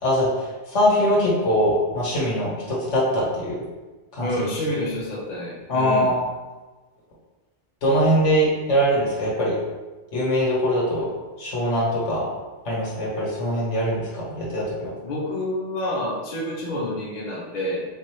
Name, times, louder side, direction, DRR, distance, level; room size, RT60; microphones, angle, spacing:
voice 1, 0.0-3.6 4.1-4.4 5.7-6.2 7.8-9.6 10.1-11.1 11.4-12.3 12.7-14.9, equal, 80° left, -6 dB, 1.6 m, -22 dB
voice 2, 4.2-6.1 15.0-17.8, left 1 dB, 45° left, -5 dB, 0.8 m, -28 dB
4.5 x 2.6 x 3.0 m, 1.2 s
omnidirectional pair, 1.2 m